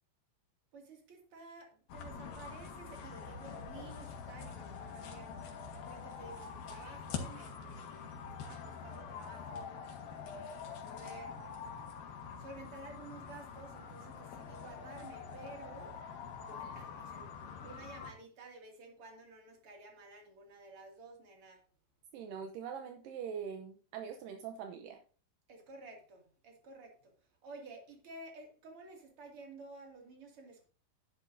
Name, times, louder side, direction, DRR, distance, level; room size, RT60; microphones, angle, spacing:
voice 1, 0.7-5.4 5.7-9.8 10.4-11.4 12.1-16.0 16.5-21.6 25.5-27.1 27.4-30.7, right 3 dB, 40° right, 3.0 m, -52 dB
sound 1, 1.9-18.1, left 6 dB, 90° left, 3.2 m, -45 dB
voice 2, 22.1-25.0, right 7 dB, 80° right, 2.4 m, -43 dB
11.0 x 10.5 x 2.7 m
omnidirectional pair, 4.0 m